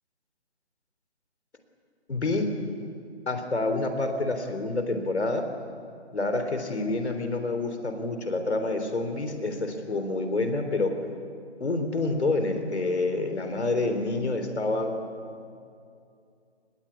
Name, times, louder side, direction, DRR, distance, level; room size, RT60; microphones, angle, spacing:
voice 1, 2.1-2.5 3.3-5.4 6.1-10.9 11.6-14.9, left 2 dB, 70° left, 7 dB, 3.6 m, -28 dB
25.0 x 19.5 x 8.4 m, 2.5 s
figure-of-eight pair, 160°, 34 cm